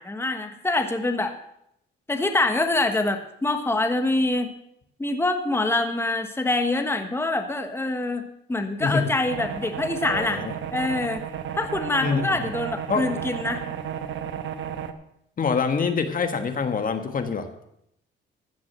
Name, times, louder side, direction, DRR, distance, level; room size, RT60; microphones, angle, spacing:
voice 1, 0.0-1.4 2.1-4.5 5.0-10.4 10.7-11.2 11.5-13.6, left 2 dB, 10° left, 6 dB, 1.4 m, -25 dB
sound 1, 9.3-14.9, right 8 dB, 70° right, 1.1 m, -33 dB
voice 2, 10.1-10.5 12.0-12.3 12.9-13.1 15.4-17.5, left 5 dB, 45° left, 7 dB, 1.4 m, -25 dB
15.0 x 6.1 x 7.4 m, 0.76 s
cardioid pair, 90°, 20 cm